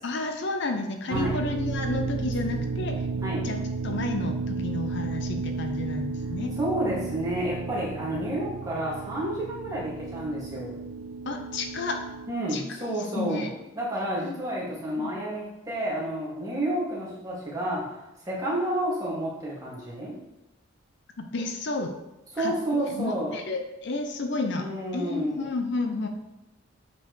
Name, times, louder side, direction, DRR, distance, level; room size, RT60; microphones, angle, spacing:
voice 1, 0.0-3.1 3.4-3.6 3.8-6.5 11.3-12.0 12.5-13.5 14.2-14.4 15.0-15.1 21.2-22.0 22.4-22.5 22.9-26.1, left 3 dB, 55° left, 6 dB, 0.6 m, -31 dB
voice 2, 1.1-1.4 3.2-3.5 6.6-10.8 12.3-13.5 13.8-18.0 18.2-20.1 22.3-23.3 24.6-25.5, right 1 dB, 15° right, -6 dB, 2.0 m, -30 dB
sound 1, 1.1-12.3, right 4 dB, 90° right, 0.4 m, -33 dB
8.2 x 5.2 x 3.2 m, 0.97 s
head